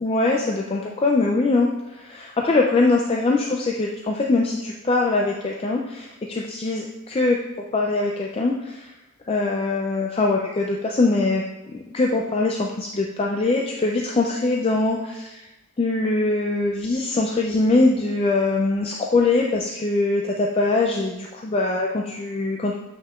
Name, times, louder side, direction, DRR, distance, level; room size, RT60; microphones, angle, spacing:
voice 1, 0.0-7.4 7.7-8.9 9.3-11.4 11.7-15.5 15.8-22.8, left 3 dB, 25° left, 0 dB, 0.4 m, -22 dB
7.6 x 5.7 x 2.4 m, 1.0 s
head